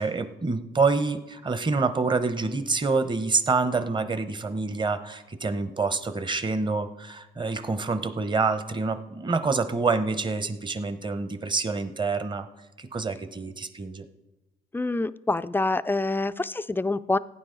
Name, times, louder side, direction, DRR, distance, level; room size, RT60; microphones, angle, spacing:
voice 1, 0.0-12.5 12.8-14.0, right 4 dB, 25° right, 10 dB, 0.8 m, -27 dB
voice 2, 14.7-17.2, left 2 dB, 10° left, 13 dB, 0.3 m, -26 dB
16.5 x 9.3 x 3.9 m, 1.0 s
cardioid pair, 90°, 20 cm